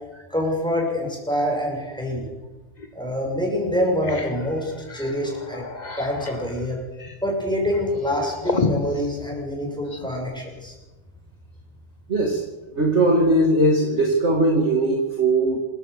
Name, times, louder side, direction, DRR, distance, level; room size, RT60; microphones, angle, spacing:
voice 1, 0.3-2.3 2.9-5.6 6.0-6.8 7.2-10.7, left 1 dB, ahead, -1 dB, 6.8 m, -25 dB
sound 1, 2.8-2.9 3.4-3.5 3.8-10.2, left 3 dB, 25° left, 1.5 m, -33 dB
voice 2, 12.1-12.4 12.7-15.6, right 1 dB, 30° right, 0 dB, 2.7 m, -19 dB
27.5 x 15.5 x 6.8 m, 1.2 s
omnidirectional pair, 2.3 m